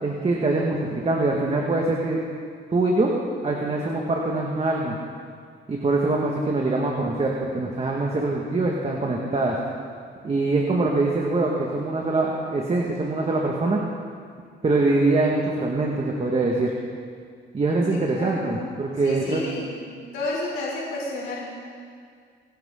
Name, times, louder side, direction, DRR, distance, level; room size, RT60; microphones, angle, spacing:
voice 1, 0.0-2.2 2.7-3.1 3.4-5.0 5.7-9.6 10.2-13.8 14.6-16.7 17.5-19.4, right 2 dB, 30° right, -2 dB, 1.8 m, -23 dB
voice 2, 17.9-19.7 20.1-21.4, left 2 dB, 85° left, -5 dB, 4.5 m, -31 dB
29.0 x 9.9 x 3.8 m, 2.1 s
cardioid pair, 90°, 20 cm